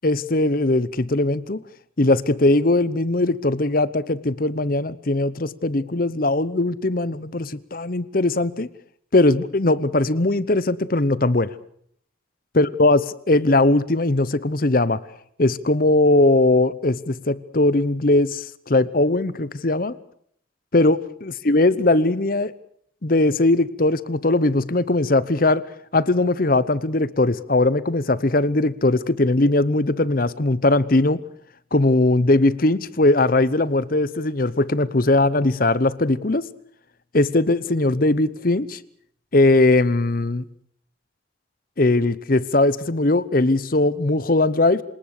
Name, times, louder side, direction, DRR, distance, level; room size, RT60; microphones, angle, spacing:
voice 1, 0.0-1.6 2.0-8.7 9.1-11.5 12.6-13.0 13.3-15.0 15.4-19.9 20.7-22.5 23.0-25.6 25.9-31.2 31.7-36.4 37.1-38.8 39.3-40.4 41.8-44.8, left 2 dB, 45° left, 18 dB, 0.9 m, -20 dB
27.5 x 19.0 x 6.6 m, 0.64 s
head